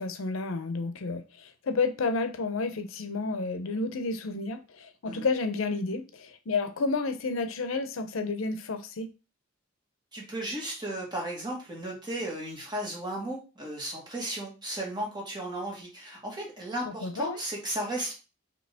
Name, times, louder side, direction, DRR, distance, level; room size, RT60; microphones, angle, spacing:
voice 1, 0.0-9.1 16.9-17.4, left 3 dB, 75° left, 0.6 m, -31 dB
voice 2, 10.1-18.1, right 1 dB, 20° right, 1.5 m, -35 dB
5.1 x 2.8 x 3.4 m
head